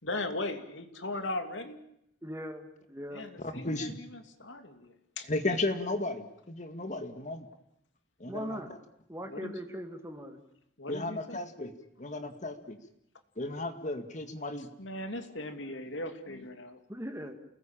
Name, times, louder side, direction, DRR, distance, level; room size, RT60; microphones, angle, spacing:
voice 1, 0.0-1.8 3.1-5.3 9.3-9.5 10.8-11.4 14.8-16.8, left 2 dB, 70° left, 7 dB, 2.8 m, -38 dB
voice 2, 2.2-2.6 2.9-3.3 8.3-8.7 9.1-10.4 16.9-17.3, equal, 15° right, 6 dB, 2.4 m, -39 dB
voice 3, 3.4-4.0 5.3-7.5 8.2-8.8 10.9-11.7 12.0-12.8 13.4-14.7, left 2 dB, 40° left, 7 dB, 2.0 m, -34 dB
29.5 x 19.5 x 8.9 m, 0.77 s
head